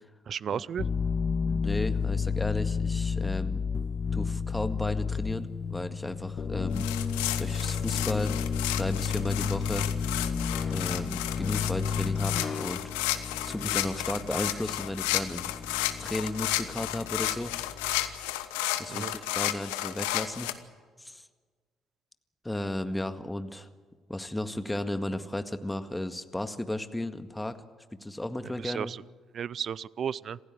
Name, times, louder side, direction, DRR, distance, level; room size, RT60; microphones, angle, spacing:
voice 1, 0.3-0.9 18.9-19.1 28.4-29.0 29.3-30.4, right 8 dB, 50° right, 23 dB, 0.6 m, -34 dB
sound 1, 0.8-18.2, left 6 dB, 45° left, 1.2 m, -32 dB
voice 2, 1.4-3.6 4.1-6.9 7.4-8.3 8.7-9.9 10.7-15.5 16.0-17.5 18.8-20.5 21.0-21.2 22.4-23.7 24.1-27.6 28.0-28.9, left 1 dB, 10° left, 9 dB, 1.9 m, -34 dB
sound 2, 6.7-20.5, left 15 dB, 75° left, 1.1 m, -33 dB
27.0 x 16.0 x 8.1 m, 1.5 s
hypercardioid pair, 45°, 0 cm